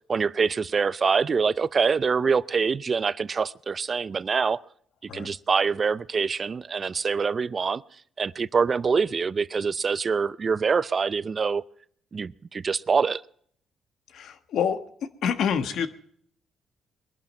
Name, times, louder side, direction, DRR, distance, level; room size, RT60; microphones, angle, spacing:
voice 1, 0.1-4.6 5.1-7.8 8.2-11.6 12.1-13.2, right 5 dB, 40° right, 0.5 m, -25 dB
voice 2, 14.1-14.8 15.2-15.9, left 7 dB, 75° left, 1.4 m, -26 dB
21.5 x 11.5 x 4.3 m
cardioid pair, 90°, 0 cm